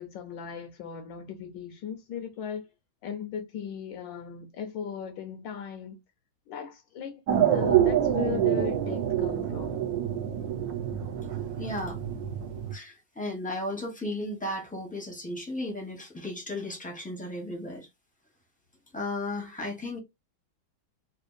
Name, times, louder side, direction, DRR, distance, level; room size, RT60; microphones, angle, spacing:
voice 1, 0.0-2.7 3.0-6.0 6.5-7.2 7.5-9.8, left 8 dB, 75° left, 1.3 m, -37 dB
sound 1, 7.3-12.7, right 10 dB, 65° right, 1.0 m, -27 dB
voice 2, 11.6-12.0 12.7-17.9 18.9-20.0, left 1 dB, 10° left, 0.5 m, -35 dB
4.3 x 2.4 x 2.5 m
omnidirectional pair, 2.2 m